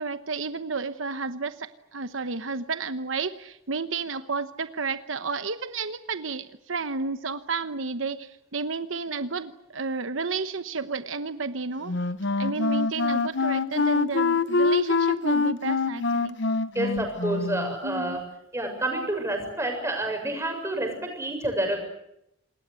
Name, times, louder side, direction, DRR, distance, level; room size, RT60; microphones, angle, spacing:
voice 1, 0.0-11.9 12.4-16.4 17.8-18.2, right 4 dB, 80° right, 11 dB, 1.1 m, -31 dB
Wind instrument woodwind instrument, 11.9-17.7, left 3 dB, 65° left, 1.0 m, -25 dB
voice 2, 16.7-18.3 18.5-21.8, right 1 dB, 15° right, 4 dB, 6.9 m, -29 dB
27.5 x 20.5 x 8.4 m, 0.81 s
head